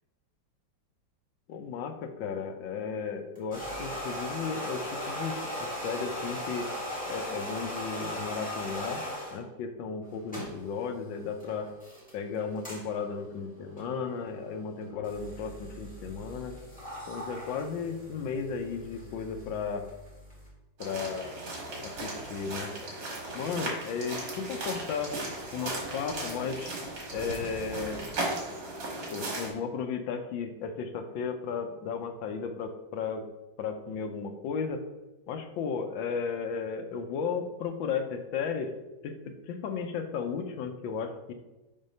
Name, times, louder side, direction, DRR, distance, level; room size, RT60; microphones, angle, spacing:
voice 1, 1.5-6.7 7.1-9.0 9.3-11.7 12.1-16.5 17.1-19.8 20.8-21.4 21.8-22.7 23.3-25.1 25.5-26.7 27.1-28.0 29.1-33.2 33.6-34.8 35.3-38.7 39.0-41.3, left 6 dB, 90° left, 6 dB, 1.5 m, -34 dB
sound 1, 3.4-9.4 10.0-20.5, equal, 5° left, 1.9 m, -39 dB
sound 2, 20.8-29.5, right 2 dB, 75° right, 2.3 m, -37 dB
6.0 x 3.7 x 5.4 m, 1.0 s
omnidirectional pair, 2.0 m